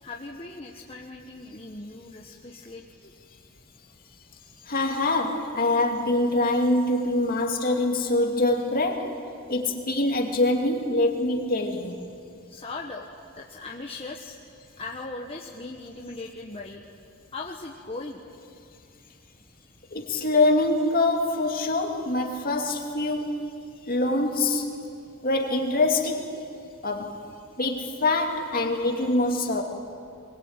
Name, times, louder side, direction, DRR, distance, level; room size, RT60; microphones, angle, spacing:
voice 1, 0.0-3.1 12.5-13.1 13.3-14.4 14.8-16.8 17.3-18.2, left 3 dB, 30° left, 1.3 m, -39 dB
voice 2, 4.7-9.2 9.5-12.1 19.9-23.6 23.9-24.7 25.2-26.3 26.8-27.2 27.6-29.6, left 2 dB, 45° left, 2.5 m, -24 dB
22.5 x 21.5 x 8.9 m
head